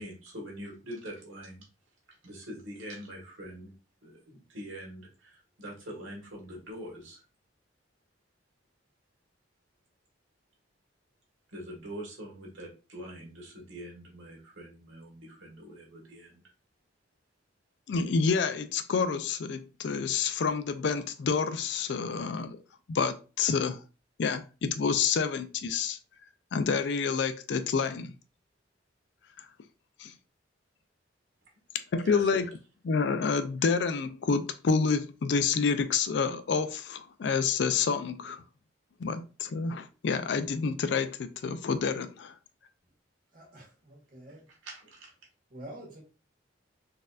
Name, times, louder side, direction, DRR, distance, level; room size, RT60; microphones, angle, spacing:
voice 1, 0.0-1.7 2.2-3.7 4.0-7.2 11.5-16.4 32.0-32.4 44.3-45.1, equal, 90° right, 1.5 m, -44 dB
voice 2, 17.9-22.6 22.9-23.8 24.2-26.0 26.5-28.1 30.0-30.1 31.9-32.5 32.9-38.4 39.0-42.3, left 5 dB, 65° left, 0.4 m, -28 dB
voice 3, 43.3-44.5 45.5-46.0, right 1 dB, 45° right, 1.5 m, -47 dB
4.1 x 2.6 x 2.4 m
head